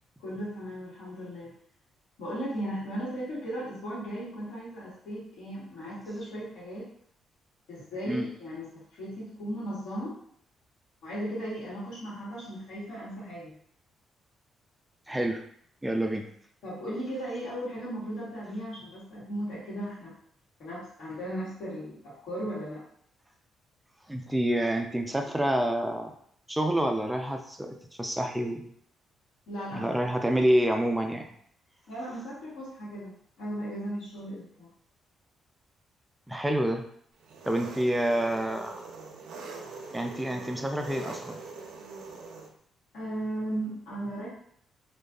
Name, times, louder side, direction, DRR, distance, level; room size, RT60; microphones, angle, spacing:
voice 1, 0.2-1.5 2.2-6.9 7.7-10.1 11.0-13.6 16.6-20.1 20.6-22.8 29.5-29.9 31.9-34.7 42.9-44.3, right 1 dB, 85° left, -9 dB, 1.2 m, -36 dB
voice 2, 15.1-15.4 15.8-16.3 24.1-26.1 26.5-28.7 29.7-31.3 36.3-36.8 37.5-38.8 39.9-41.4, right 1 dB, 5° right, 4 dB, 0.3 m, -28 dB
Engine, 37.2-42.5, right 4 dB, 80° right, 0.4 m, -43 dB
2.6 x 2.3 x 2.3 m, 0.65 s
cardioid pair, 90°, 0 cm